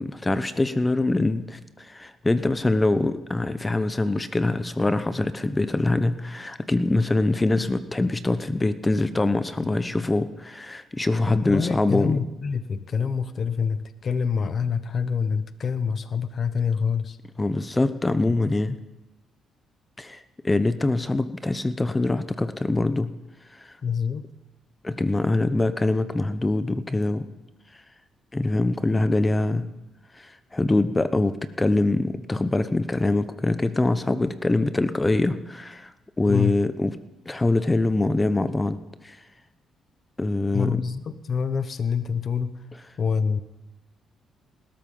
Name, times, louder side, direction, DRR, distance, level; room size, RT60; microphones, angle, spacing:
voice 1, 0.0-12.2 17.4-18.8 20.0-23.1 23.5-23.7 24.8-27.3 28.3-29.7 30.1-35.9 36.2-36.9 37.3-38.8 39.0-39.2 40.2-40.8, left 2 dB, 15° left, 12 dB, 0.8 m, -24 dB
voice 2, 11.2-17.2 18.4-18.5 23.8-24.3 36.3-36.5 40.5-42.5 43.0-43.4, left 6 dB, 50° left, 13 dB, 0.9 m, -26 dB
19.5 x 13.0 x 5.5 m, 1.0 s
cardioid pair, 90°, 0 cm